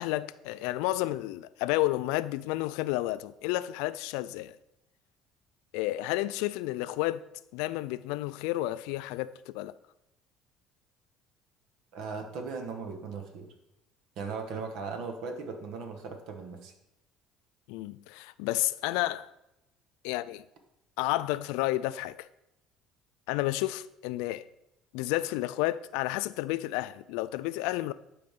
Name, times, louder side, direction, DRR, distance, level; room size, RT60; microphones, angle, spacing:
voice 1, 0.0-4.6 5.7-7.2 7.5-9.7 17.7-19.3 20.0-20.4 21.0-22.3 23.3-24.4 24.9-27.9, left 17 dB, 85° left, 0.3 m, -31 dB
voice 2, 11.9-13.5 14.2-16.7, right 4 dB, 70° right, 1.4 m, -38 dB
12.0 x 5.1 x 3.7 m
cardioid pair, 110°, 0 cm